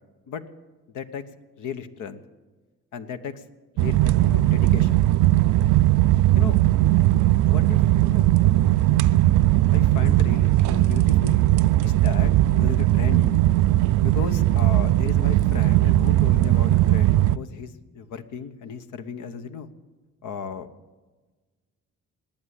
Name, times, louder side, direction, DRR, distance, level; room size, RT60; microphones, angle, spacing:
voice 1, 1.6-2.2 2.9-3.4 3.7-5.0 6.4-6.6 7.4-8.3 9.7-11.4 11.8-13.4 14.0-19.7 20.2-20.7, left 6 dB, 80° left, 9 dB, 1.1 m, -35 dB
sound 1, 3.8-17.4, right 15 dB, 75° right, 0.5 m, -19 dB
19.0 x 8.8 x 8.4 m, 1.3 s
cardioid pair, 90°, 30 cm